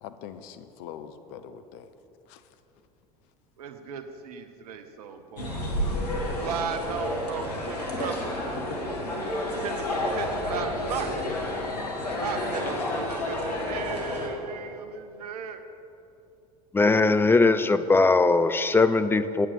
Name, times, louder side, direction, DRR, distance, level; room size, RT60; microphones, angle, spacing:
voice 1, 0.0-1.9 2.3-2.4, left 8 dB, 55° left, 10 dB, 0.7 m, -43 dB
voice 2, 3.6-5.6 6.4-8.4 9.6-11.1 12.2-15.6, right 6 dB, 70° right, 8 dB, 0.9 m, -36 dB
sound 1, 5.4-14.3, left 1 dB, 80° left, 1.7 m, -30 dB
voice 3, 16.7-19.5, left 3 dB, 10° left, 11 dB, 0.4 m, -20 dB
8.8 x 8.7 x 6.8 m, 2.7 s
figure-of-eight pair, 70°, 20 cm